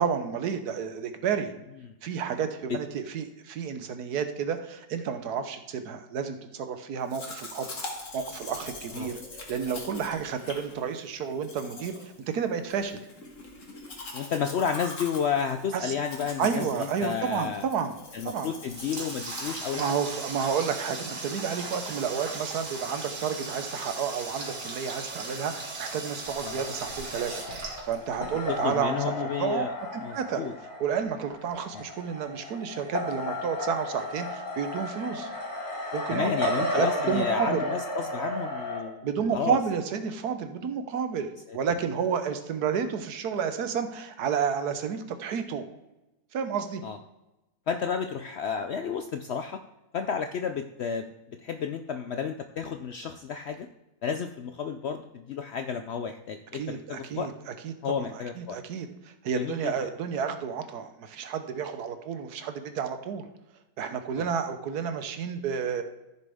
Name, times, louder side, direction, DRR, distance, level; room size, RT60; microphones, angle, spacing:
voice 1, 0.0-1.5 2.0-7.7 8.1-9.2 9.5-11.9 12.3-13.0 15.7-15.9 16.4-17.9 18.2-18.5 19.8-25.5 25.8-27.4 27.8-28.9 29.4-29.6 29.9-30.4 30.8-35.3 35.9-37.6 39.0-45.6 46.3-46.8 56.5-57.7 58.0-58.9 59.2-63.3 63.8-65.8, right 7 dB, 80° right, 9 dB, 1.4 m, -31 dB
Domestic sounds home sounds, 7.1-20.5, left 2 dB, 55° left, 1.9 m, -43 dB
voice 2, 14.1-17.7 18.1-19.9 26.4-26.6 28.5-29.7 30.0-30.5 31.7-31.8 36.1-39.1 39.3-39.6 41.5-41.6 46.8-47.0 47.7-49.6 49.9-53.7 54.0-57.3 57.8-58.6 59.3-59.7 64.2-64.3, left 7 dB, 70° left, 7 dB, 0.6 m, -32 dB
Water tap faucet, 18.3-28.5, right 3 dB, 60° right, 2.1 m, -38 dB
sound 1, 26.3-38.8, left 1 dB, 35° left, 2.0 m, -34 dB
14.5 x 6.8 x 3.5 m, 0.99 s
omnidirectional pair, 1.6 m